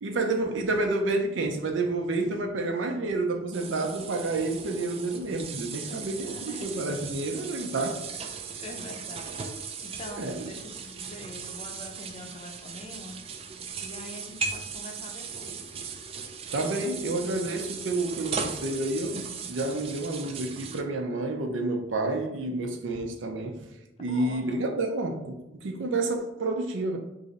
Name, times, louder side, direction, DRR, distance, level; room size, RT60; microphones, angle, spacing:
voice 1, 0.0-8.0 10.1-10.5 16.5-23.7 24.0-27.0, right 2 dB, 85° right, 0.6 m, -29 dB
sound 1, 3.5-20.8, right 5 dB, 30° right, 0.3 m, -38 dB
voice 2, 6.0-6.8 8.5-9.4 9.8-13.2 13.8-15.6 24.1-24.6, left 1 dB, 35° left, 0.5 m, -44 dB
3.1 x 2.5 x 3.9 m
head